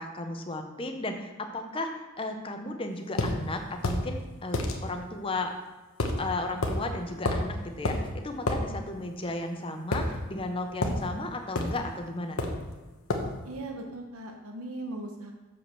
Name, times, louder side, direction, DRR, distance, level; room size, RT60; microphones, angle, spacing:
voice 1, 0.0-5.5 6.2-12.5, left 2 dB, 25° left, 5 dB, 0.7 m, -34 dB
sound 1, 3.2-3.3 3.8-4.0 4.5-4.7 6.0-6.2 6.6-6.8 7.2-7.5 7.8-8.0 8.5-8.6 9.9-10.5 10.8-11.0 11.5-11.8 12.4-12.6 13.1-13.3, left 2 dB, 75° left, 1.1 m, -28 dB
voice 2, 13.4-15.3, right 2 dB, 80° right, 2 dB, 1.0 m, -38 dB
7.2 x 5.0 x 6.2 m, 1.2 s
head